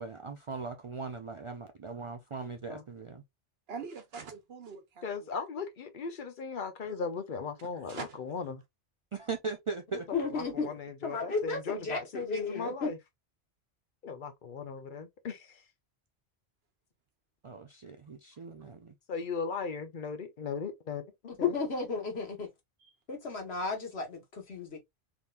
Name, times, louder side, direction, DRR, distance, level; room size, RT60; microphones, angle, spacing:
voice 1, 0.0-3.2 9.1-10.1 17.4-18.9, right 4 dB, 50° right, 0.4 m, -39 dB
voice 2, 3.7-5.3 7.9-8.2 22.8-22.9, right 5 dB, 75° right, 1.1 m, -43 dB
voice 3, 5.0-8.6 10.3-13.0 14.0-15.6 19.1-21.0 21.4-21.6, left 5 dB, 55° left, 0.8 m, -38 dB
voice 4, 10.1-10.7 11.0-12.9 21.4-22.5 23.1-24.8, left 4 dB, 80° left, 1.6 m, -33 dB
3.6 x 2.9 x 2.4 m
omnidirectional pair, 1.1 m